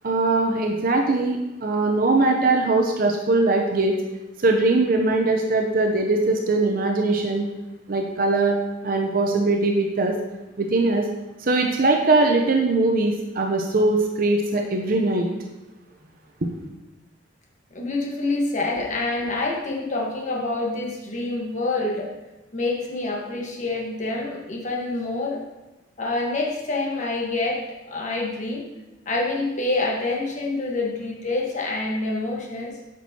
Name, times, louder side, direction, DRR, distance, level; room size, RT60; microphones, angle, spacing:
voice 1, 0.0-4.0 4.4-7.4 7.9-8.6 8.8-10.1 10.6-11.1 11.4-15.3, right 2 dB, 50° right, 2 dB, 0.6 m, -21 dB
voice 2, 17.7-22.1 22.5-25.4 26.0-28.7 29.0-32.8, left 2 dB, 40° left, -1 dB, 1.2 m, -27 dB
8.8 x 6.1 x 2.8 m, 1.0 s
head